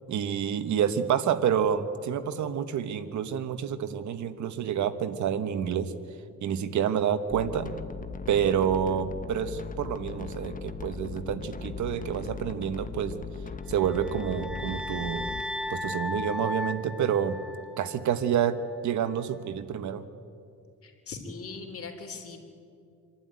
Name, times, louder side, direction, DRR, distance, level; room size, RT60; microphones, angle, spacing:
voice 1, 0.1-5.9 6.4-7.7 8.3-13.1 13.7-15.3 15.7-17.4 17.8-18.6 18.8-20.0, right 8 dB, 70° right, 11 dB, 1.2 m, -28 dB
sound 1, 7.3-15.4, left 5 dB, 25° left, 1.1 m, -38 dB
sound 2, 13.8-18.0, left 1 dB, 5° right, 1.2 m, -36 dB
voice 2, 20.8-22.4, left 4 dB, 50° left, 5 dB, 3.4 m, -40 dB
26.5 x 12.0 x 9.5 m, 2.4 s
cardioid pair, 90°, 30 cm